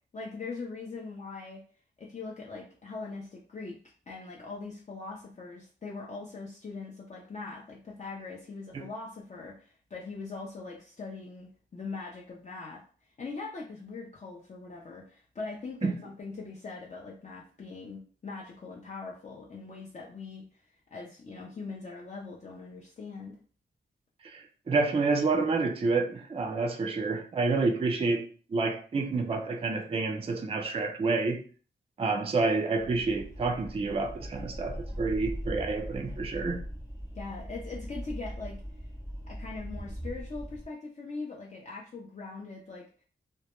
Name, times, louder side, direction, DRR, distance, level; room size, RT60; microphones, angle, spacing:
voice 1, 0.1-1.6 2.0-3.8 4.1-12.8 13.2-20.4 20.9-23.4 37.1-38.6 39.3-42.9, left 4 dB, 35° left, -3 dB, 0.5 m, -41 dB
voice 2, 24.3-28.2 28.5-31.4 32.0-36.6, right 3 dB, 30° right, 5 dB, 0.4 m, -28 dB
sound 1, 32.8-40.7, equal, 20° left, 0.8 m, -40 dB
2.1 x 2.0 x 2.9 m, 0.41 s
wide cardioid pair, 80°, 20 cm